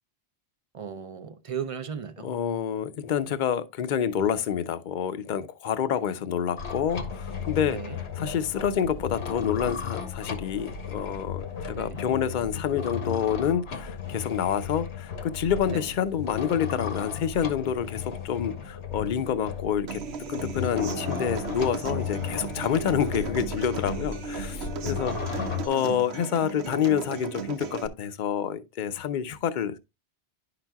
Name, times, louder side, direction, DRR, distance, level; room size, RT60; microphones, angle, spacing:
voice 1, 0.7-2.3 7.7-8.0 11.7-12.0 15.7-15.9 25.0-26.1, right 7 dB, 40° right, 0.6 m, -37 dB
voice 2, 2.2-20.0 20.3-29.8, left 8 dB, 50° left, 0.7 m, -28 dB
sound 1, 6.6-25.7, left 7 dB, 85° left, 1.4 m, -35 dB
Human voice / Acoustic guitar, 19.9-27.9, right 6 dB, 75° right, 1.0 m, -36 dB
10.5 x 5.9 x 2.3 m
omnidirectional pair, 1.1 m